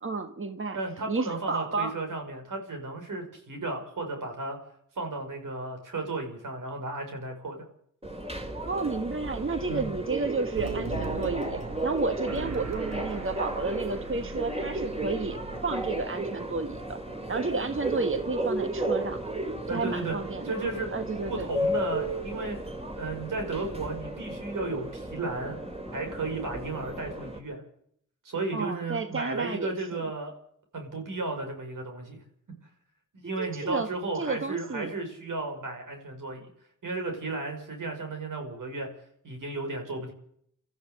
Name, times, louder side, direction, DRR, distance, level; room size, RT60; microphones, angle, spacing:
voice 1, 0.0-0.8 1.1-1.9 8.6-15.4 15.6-17.0 17.3-19.3 19.7-20.5 20.9-21.5 28.5-30.0 33.4-33.9 34.1-34.9, right 3 dB, 40° right, 8 dB, 1.4 m, -31 dB
voice 2, 0.7-4.6 5.0-7.6 9.7-9.9 19.7-20.2 20.4-20.9 21.3-22.6 23.0-25.6 25.9-27.6 28.2-30.3 30.7-32.2 33.1-36.5 36.8-38.9 39.2-40.1, right 3 dB, 85° right, 3 dB, 5.6 m, -34 dB
Subway metro underground, 8.0-27.4, right 1 dB, 20° right, 4.6 m, -34 dB
sound 1, 10.5-16.1, right 4 dB, 55° right, 2.3 m, -40 dB
24.0 x 13.5 x 8.1 m, 0.67 s
cardioid pair, 60°, 31 cm